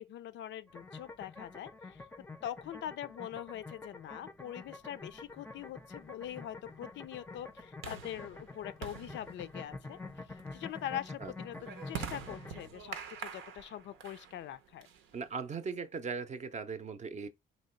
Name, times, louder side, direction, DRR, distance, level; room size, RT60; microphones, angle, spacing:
voice 1, 0.0-2.0 2.4-10.0 10.5-11.6 11.9-14.9, left 11 dB, 70° left, 0.4 m, -43 dB
sound 1, 0.7-12.7, left 3 dB, 10° left, 0.5 m, -48 dB
sound 2, 5.1-15.5, right 7 dB, 90° right, 0.7 m, -47 dB
voice 2, 11.2-11.6 15.1-17.3, right 5 dB, 35° right, 0.6 m, -39 dB
3.0 x 2.8 x 4.3 m
cardioid pair, 90°, 20 cm